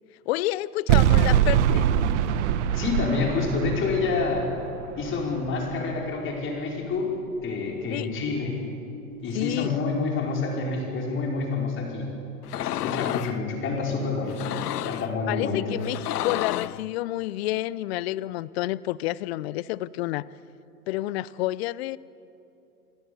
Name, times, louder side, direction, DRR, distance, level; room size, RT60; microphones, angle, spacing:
voice 1, 0.3-1.9 7.9-8.1 9.3-9.8 15.3-20.3 20.9-22.0, left 16 dB, 45° left, 21 dB, 0.6 m, -29 dB
sound 1, 0.9-6.1, right 10 dB, 50° right, 1.2 m, -24 dB
voice 2, 2.7-4.5 5.0-7.1 7.4-8.6 9.2-12.1 12.6-14.4 14.9-15.6, left 4 dB, 25° left, 0 dB, 5.0 m, -28 dB
sound 2, 12.4-13.4 14.3-15.1 15.8-16.8, left 13 dB, 80° left, 0.6 m, -31 dB
28.0 x 17.5 x 7.0 m, 2.9 s
hypercardioid pair, 125°, 46 cm